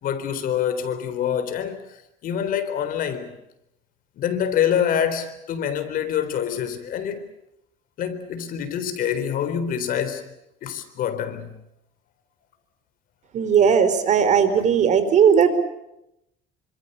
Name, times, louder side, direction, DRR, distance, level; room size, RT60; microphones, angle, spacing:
voice 1, 0.0-1.8 2.2-3.3 4.2-7.2 8.0-10.2 10.6-11.5, left 9 dB, 55° left, 3.9 m, -26 dB
voice 2, 13.3-15.6, right 7 dB, 45° right, 4.3 m, -17 dB
28.0 x 25.5 x 6.7 m
cardioid pair, 145°, 17 cm